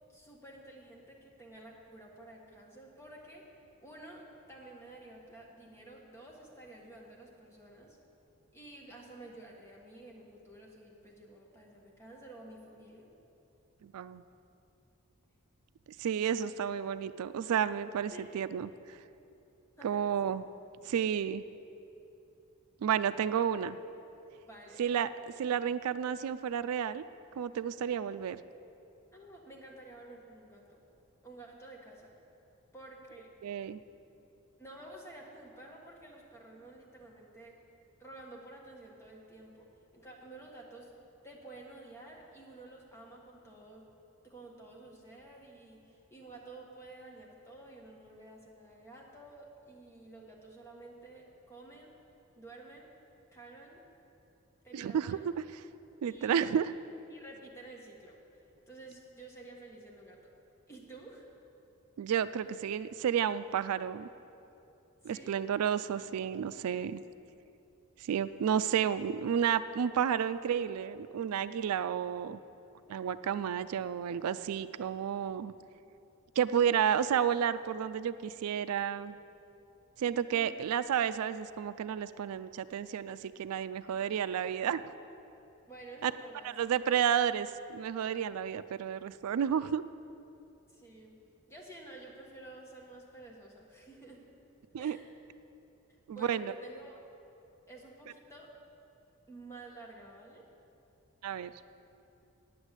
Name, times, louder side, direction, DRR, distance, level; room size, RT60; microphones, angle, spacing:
voice 1, 0.1-3.5 3.8-8.0 8.5-13.1 18.1-18.2 19.8-20.3 23.3-23.5 24.4-24.8 29.1-30.8 31.2-32.1 32.7-33.3 34.6-37.6 38.0-40.9 41.2-43.8 44.2-51.9 52.4-52.9 53.3-53.8 54.6-55.3 56.1-56.6 57.1-60.3 60.7-61.3 65.0-65.4 80.3-80.6 85.7-86.5 90.7-91.2 91.5-94.2 94.8-95.1 96.1-96.9 97.7-98.5 99.3-100.5, right 2 dB, 10° left, -2 dB, 1.4 m, -51 dB
voice 2, 13.8-14.2 16.0-19.0 19.8-20.4 20.9-21.4 22.8-23.7 24.8-25.1 25.4-27.0 27.4-28.4 33.4-33.8 54.7-55.3 56.0-56.7 62.0-64.1 65.0-67.0 68.0-72.4 72.9-75.5 76.4-79.1 80.0-84.8 86.0-86.1 86.4-89.8 94.7-95.0 96.1-96.5 101.2-101.5, right 8 dB, 90° right, 14 dB, 0.3 m, -31 dB
9.1 x 7.9 x 8.1 m, 2.8 s
head